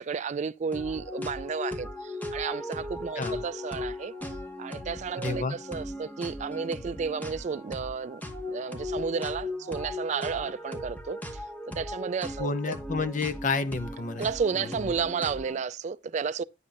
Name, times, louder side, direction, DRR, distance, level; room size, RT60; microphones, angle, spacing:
voice 1, 0.0-4.1 4.6-8.2 8.5-11.4 11.7-12.7 14.2-16.4, right 5 dB, 40° right, 0.3 m, -32 dB
sound 1, 0.7-15.6, left 1 dB, 10° left, 1.0 m, -37 dB
voice 2, 5.2-5.5 12.4-14.3, left 4 dB, 45° left, 0.7 m, -30 dB
9.6 x 7.3 x 2.4 m
head